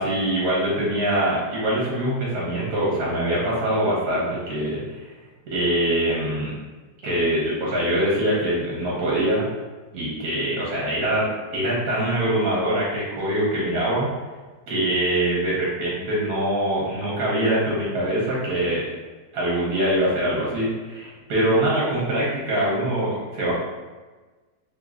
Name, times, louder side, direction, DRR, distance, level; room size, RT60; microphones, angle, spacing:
voice 1, 0.0-4.8 5.5-6.5 7.0-9.5 9.9-11.3 11.5-14.1 14.7-18.8 19.3-23.5, right 1 dB, 65° right, -6 dB, 1.4 m, -23 dB
3.6 x 2.9 x 2.4 m, 1.3 s
omnidirectional pair, 1.8 m